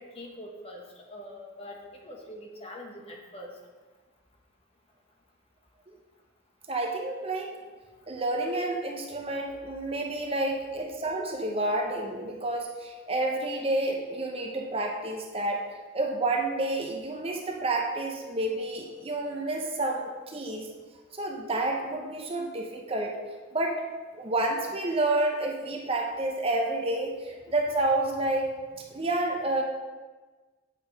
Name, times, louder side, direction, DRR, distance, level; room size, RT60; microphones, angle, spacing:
voice 1, 0.0-3.5, left 1 dB, 30° left, 0 dB, 1.2 m, -44 dB
voice 2, 6.7-7.6 8.1-15.6 15.9-20.7 21.1-23.2 23.5-23.8 24.1-28.5 28.9-29.6, right 2 dB, 30° right, 1 dB, 0.8 m, -29 dB
8.2 x 5.4 x 5.3 m, 1.3 s
head